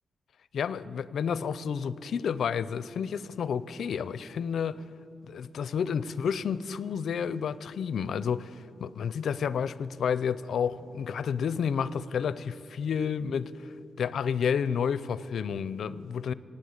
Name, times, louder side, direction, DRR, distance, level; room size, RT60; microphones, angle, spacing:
voice 1, 0.5-4.8 5.2-13.7 14.0-16.3, left 7 dB, 70° left, 17 dB, 0.4 m, -30 dB
18.0 x 8.7 x 8.0 m, 2.9 s
wide cardioid pair, 175°, 0 cm